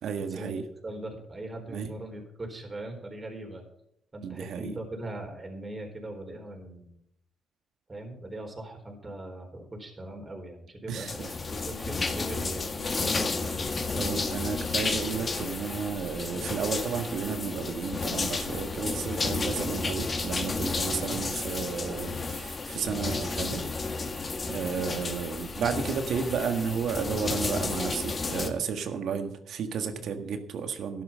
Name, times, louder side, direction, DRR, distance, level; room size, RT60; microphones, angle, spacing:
voice 1, 0.0-0.6 1.7-1.9 4.2-4.8 10.9-11.1 13.9-24.1 24.5-31.0, right 6 dB, 70° right, 7 dB, 1.6 m, -32 dB
voice 2, 0.8-3.6 4.1-7.0 7.9-13.6 21.0-22.0 30.0-30.2, right 1 dB, 25° right, 2 dB, 4.1 m, -40 dB
sound 1, 11.0-28.5, left 3 dB, 35° left, 1.7 m, -32 dB
12.5 x 11.0 x 5.6 m, 0.75 s
cardioid pair, 90°, 0 cm